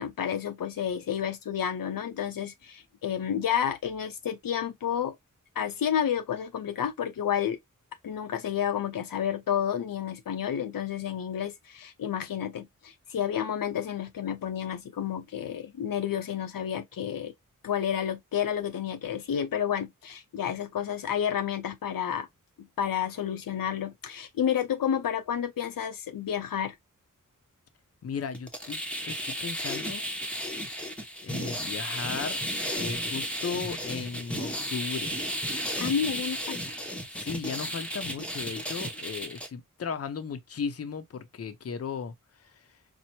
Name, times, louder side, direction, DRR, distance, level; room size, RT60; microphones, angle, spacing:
voice 1, 0.0-5.1 5.6-7.6 8.0-17.3 17.6-22.3 22.6-26.7 35.8-36.6, left 9 dB, 90° left, 0.6 m, -30 dB
voice 2, 28.0-30.0 31.2-32.4 32.7-35.1 37.1-42.6, left 6 dB, 45° left, 0.5 m, -36 dB
sound 1, 28.3-39.5, equal, 5° left, 0.8 m, -34 dB
4.3 x 2.0 x 2.8 m
wide cardioid pair, 110°, 33 cm